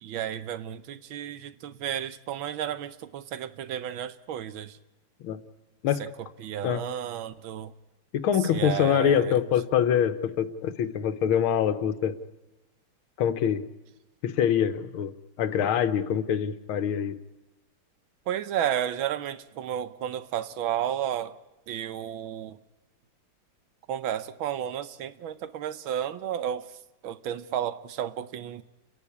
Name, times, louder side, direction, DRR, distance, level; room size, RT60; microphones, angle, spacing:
voice 1, 0.0-4.8 6.0-6.1 6.4-7.7 8.4-9.4 18.3-21.3 21.7-22.6 23.9-26.8 27.0-28.6, right 10 dB, 75° right, 1.6 m, -32 dB
voice 2, 8.2-12.1 13.2-13.6 14.2-15.1 15.4-17.1, left 9 dB, 80° left, 1.9 m, -24 dB
30.0 x 11.0 x 8.5 m
omnidirectional pair, 2.3 m